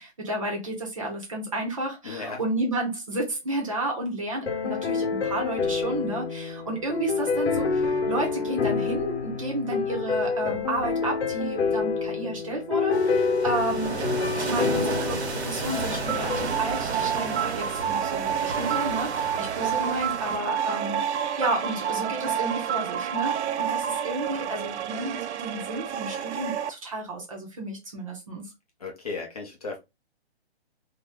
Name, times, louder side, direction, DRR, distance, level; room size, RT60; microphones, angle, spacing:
voice 1, 0.0-14.0 14.3-28.5, right 1 dB, 30° right, 0.8 m, -32 dB
voice 2, 2.0-2.4 28.8-29.8, left 4 dB, 35° left, 0.7 m, -35 dB
sound 1, 4.5-16.5, left 5 dB, 75° left, 1.0 m, -27 dB
sound 2, 12.9-20.4, right 4 dB, 70° right, 1.1 m, -33 dB
sound 3, 16.0-26.7, right 9 dB, 90° right, 0.5 m, -29 dB
2.7 x 2.2 x 3.3 m
hypercardioid pair, 175°, 33 cm